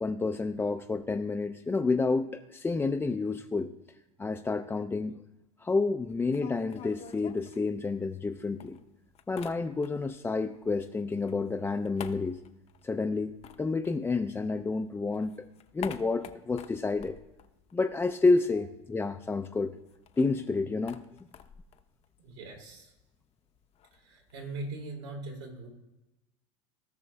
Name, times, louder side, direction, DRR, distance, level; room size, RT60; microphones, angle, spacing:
voice 1, 0.0-3.7 4.2-5.2 5.6-8.8 9.3-12.4 12.8-13.3 13.6-15.5 15.7-17.2 17.7-19.7 20.2-21.0, left 3 dB, 15° left, 5 dB, 0.4 m, -29 dB
sound 1, 6.1-8.3 8.6-10.2 10.5-14.7 15.0-18.3 18.5-18.6 18.9-24.7, left 9 dB, 40° left, 0.8 m, -49 dB
voice 2, 22.2-22.9 23.9-25.7, right 2 dB, 75° right, -1 dB, 3.1 m, -41 dB
17.5 x 5.9 x 2.2 m, 1.0 s
hypercardioid pair, 90°, 16 cm